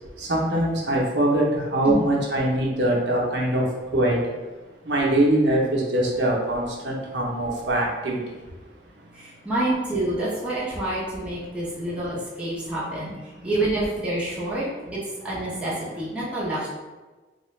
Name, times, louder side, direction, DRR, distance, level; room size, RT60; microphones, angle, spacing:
voice 1, 0.2-3.6 3.9-4.2 4.8-8.2, right 1 dB, 70° right, -3 dB, 0.8 m, -22 dB
voice 2, 9.1-13.2 13.4-14.7 14.9-16.7, right 1 dB, 5° right, -8 dB, 0.8 m, -27 dB
3.8 x 2.3 x 3.1 m, 1.2 s
head